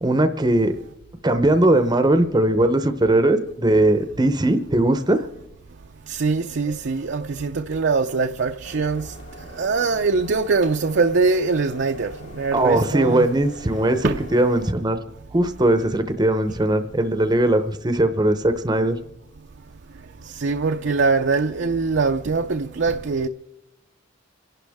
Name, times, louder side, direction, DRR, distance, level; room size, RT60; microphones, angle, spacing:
voice 1, 0.0-0.7 1.2-5.2 12.5-15.0 15.3-19.0, right 1 dB, 20° right, 0.7 m, -19 dB
voice 2, 6.1-9.1 9.6-13.3 14.0-14.1 20.4-23.3, right 4 dB, 60° right, 0.5 m, -22 dB
sound 1, 8.6-14.7, left 1 dB, 65° left, 4.8 m, -43 dB
28.0 x 11.5 x 3.5 m
head